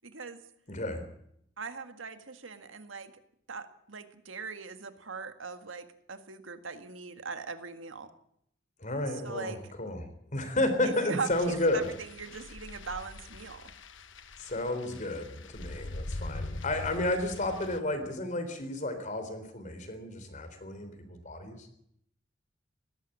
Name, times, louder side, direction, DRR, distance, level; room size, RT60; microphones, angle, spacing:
voice 1, 0.0-0.4 1.6-3.1 3.5-8.1 9.2-9.6 10.8-13.7, right 4 dB, 90° right, 9 dB, 1.8 m, -40 dB
voice 2, 0.7-1.0 8.8-10.0 10.3-11.9 14.4-21.7, left 1 dB, 40° left, 8 dB, 3.7 m, -32 dB
sound 1, 11.3-17.8, left 2 dB, 75° left, 1.2 m, -43 dB
19.0 x 14.5 x 9.9 m, 0.73 s
head